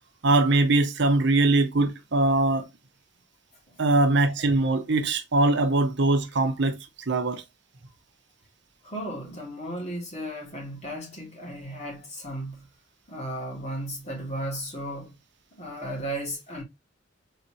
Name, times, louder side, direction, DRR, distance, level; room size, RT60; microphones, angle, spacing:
voice 1, 0.2-2.7 3.8-7.4, right 2 dB, 65° right, 0.8 m, -22 dB
voice 2, 8.8-12.7 13.1-15.2 15.6-16.6, right 1 dB, 35° left, 2.3 m, -35 dB
4.1 x 3.9 x 2.9 m
head